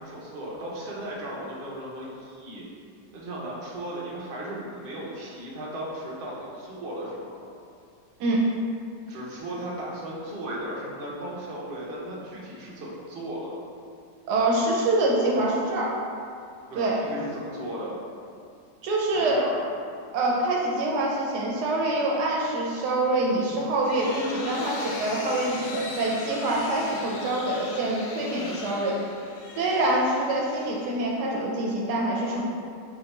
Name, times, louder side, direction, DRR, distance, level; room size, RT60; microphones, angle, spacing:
voice 1, 0.0-2.6 3.1-7.5 9.1-13.6 16.7-17.9 19.1-19.6, right 1 dB, 45° right, -5 dB, 0.8 m, -36 dB
voice 2, 14.3-15.9 16.7-17.0 18.8-19.4 20.1-29.0 29.6-32.4, right 2 dB, 75° right, -2 dB, 1.2 m, -25 dB
sound 1, 23.5-31.3, left 3 dB, 75° left, 0.7 m, -39 dB
4.0 x 2.8 x 4.5 m, 2.4 s
omnidirectional pair, 1.9 m